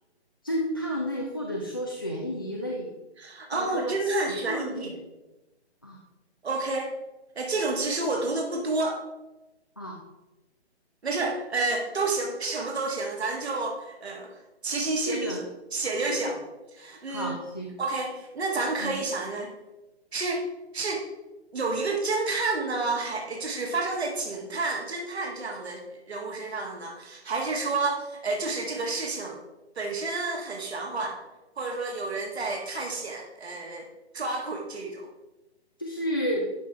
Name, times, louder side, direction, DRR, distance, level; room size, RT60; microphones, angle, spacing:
voice 1, 0.4-2.9 3.5-4.9 5.8-6.0 9.8-10.0 15.0-15.4 17.1-17.7 18.8-18.9 35.8-36.5, equal, 20° left, -1 dB, 0.3 m, -31 dB
voice 2, 3.2-5.0 6.4-6.9 7.3-9.0 11.0-15.4 15.7-16.4 16.7-17.3 17.8-19.5 20.1-20.4 20.7-21.1 21.5-29.4 29.7-31.2 31.6-33.9 34.1-35.1, right 3 dB, 70° right, 1 dB, 1.4 m, -30 dB
11.0 x 4.6 x 3.3 m, 1.0 s
figure-of-eight pair, 140°, 33 cm